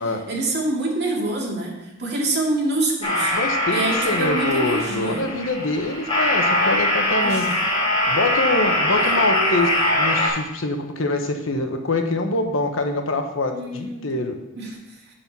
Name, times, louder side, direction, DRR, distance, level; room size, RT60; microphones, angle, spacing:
voice 1, 0.3-3.3 3.7-5.2 7.2-7.5 9.0-9.7 13.5-14.3 14.6-14.7, right 2 dB, 55° right, -3 dB, 2.4 m, -26 dB
sound 1, 3.0-10.3, left 1 dB, 25° left, 3.5 m, -22 dB
voice 2, 3.3-3.8 4.0-7.5 8.1-14.4, left 2 dB, 85° left, 5 dB, 1.1 m, -25 dB
7.5 x 7.0 x 5.5 m, 0.93 s
head